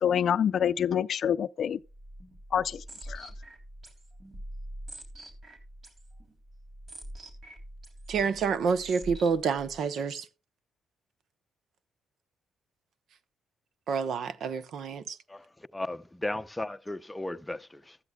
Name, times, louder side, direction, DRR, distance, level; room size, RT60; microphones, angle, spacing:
voice 1, 0.0-1.8 2.5-3.3, left 8 dB, 60° left, 0.4 m, -27 dB
sound 1, 1.8-9.8, right 1 dB, 45° right, 3.5 m, -45 dB
voice 2, 8.1-10.3 13.9-15.2, right 6 dB, 65° right, 0.9 m, -28 dB
voice 3, 15.3-18.0, left 1 dB, 10° left, 0.7 m, -36 dB
15.0 x 13.5 x 2.3 m
cardioid pair, 90°, 0 cm